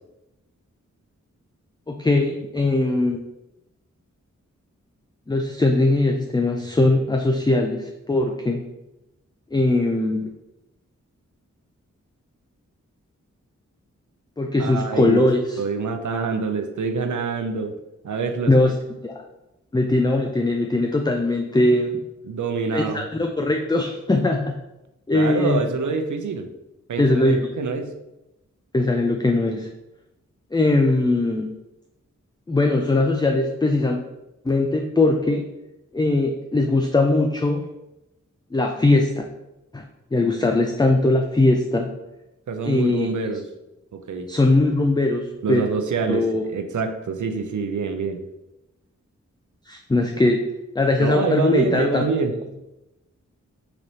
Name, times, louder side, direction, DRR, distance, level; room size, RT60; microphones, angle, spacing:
voice 1, 1.9-3.2 5.3-8.6 9.5-10.3 14.4-15.6 18.5-18.7 19.0-19.1 19.7-22.0 22.7-24.5 25.1-25.6 27.0-27.5 28.7-29.7 30.5-31.5 32.5-34.0 34.4-35.5 35.9-37.6 38.5-39.2 39.7-39.8 40.1-41.9 42.6-43.1 44.3-45.6 46.1-46.4 49.7-50.5 50.8-52.0, left 2 dB, 15° left, 3 dB, 0.4 m, -20 dB
voice 2, 14.6-15.3 15.6-17.7 18.0-18.7 22.2-23.1 25.1-26.5 26.9-27.9 42.5-43.4 43.9-44.3 45.4-48.2 51.0-52.6, right 5 dB, 75° right, 6 dB, 0.6 m, -26 dB
4.0 x 3.2 x 4.2 m, 0.95 s
cardioid pair, 45°, 30 cm